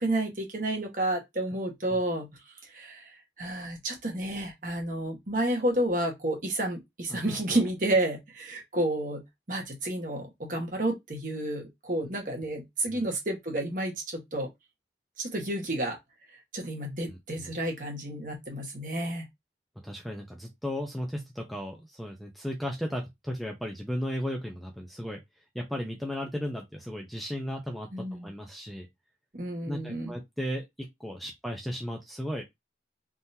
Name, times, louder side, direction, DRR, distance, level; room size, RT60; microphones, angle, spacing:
voice 1, 0.0-2.3 2.6-14.5 15.2-16.0 16.5-19.3 27.9-28.3 29.3-30.1, right 1 dB, 45° right, 1.3 m, -31 dB
voice 2, 7.1-7.6 12.9-13.0 17.1-17.5 19.8-25.2 25.5-28.9 29.7-32.4, equal, ahead, 0.6 m, -35 dB
3.7 x 2.9 x 2.7 m
head